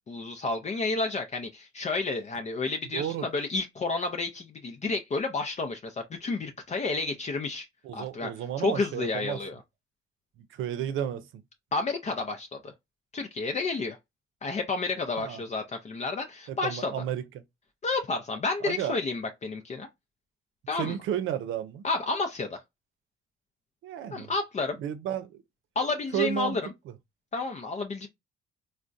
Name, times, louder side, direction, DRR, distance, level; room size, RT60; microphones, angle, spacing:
voice 1, 0.1-7.7 7.9-8.3 8.6-9.6 11.7-12.7 13.1-14.0 14.4-16.9 17.8-19.9 20.7-21.0 21.8-22.6 24.1-24.8 25.8-26.6 27.3-28.1, left 3 dB, 35° left, 0.5 m, -31 dB
voice 2, 2.9-3.3 7.8-9.4 10.5-11.3 15.2-15.4 16.5-17.2 18.6-19.0 20.8-21.8 23.8-24.3 24.8-25.4 26.1-26.6, right 10 dB, 80° right, 0.6 m, -32 dB
3.5 x 2.1 x 2.5 m
cardioid pair, 90°, 20 cm